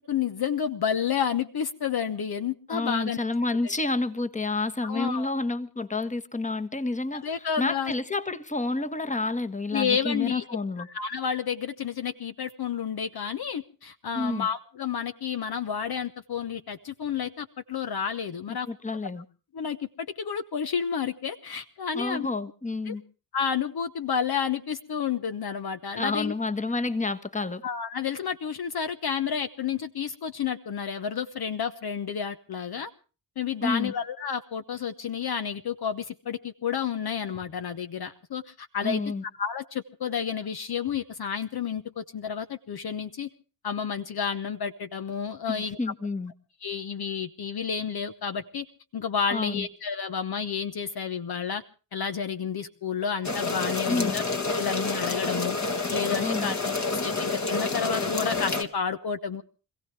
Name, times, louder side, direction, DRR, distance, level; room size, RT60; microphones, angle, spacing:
voice 1, 0.1-3.2 4.8-5.3 7.1-7.9 9.7-10.4 10.8-18.7 19.5-22.3 22.9-23.0 23.3-26.3 27.6-32.9 33.4-39.0 39.4-43.3 43.6-45.8 46.6-48.7 48.9-51.6 51.9-54.2 54.5-55.6 55.9-56.6 56.9-59.4, left 7 dB, 50° left, 1.0 m, -30 dB
voice 2, 2.7-10.9 14.1-14.5 18.7-19.2 21.9-23.0 25.9-27.6 33.6-33.9 38.8-39.2 45.5-46.3 49.3-49.7 53.9-54.2 56.2-56.6, left 3 dB, 15° left, 1.4 m, -29 dB
sound 1, 53.2-58.6, left 3 dB, 35° left, 1.9 m, -28 dB
26.0 x 16.0 x 3.3 m
supercardioid pair, 50°, 47 cm